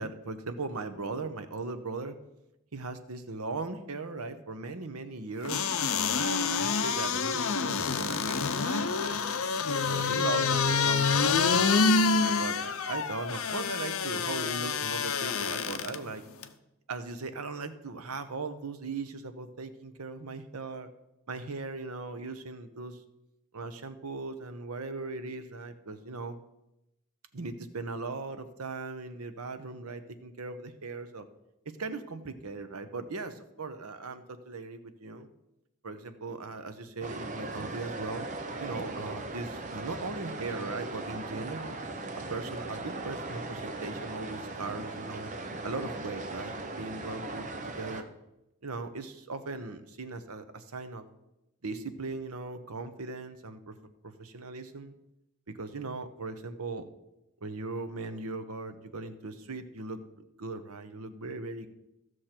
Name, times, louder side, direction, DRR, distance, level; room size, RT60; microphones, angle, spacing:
voice 1, 0.0-2.2 2.7-5.6 6.2-9.2 9.8-11.7 12.1-16.2 16.9-20.9 21.3-23.0 23.5-26.4 27.3-31.3 31.8-35.3 35.8-38.3 38.6-41.8 42.3-45.3 45.6-47.5 47.8-48.1 48.6-51.0 51.6-53.7 54.0-54.9 55.5-56.9 57.4-60.0 60.4-61.7, right 3 dB, 90° right, 10 dB, 0.9 m, -38 dB
sound 1, 5.5-16.0 16.4-16.5, left 5 dB, 75° left, 0.7 m, -27 dB
sound 2, 37.0-48.0, right 2 dB, 35° right, 0.8 m, -38 dB
15.0 x 6.4 x 4.4 m, 0.91 s
head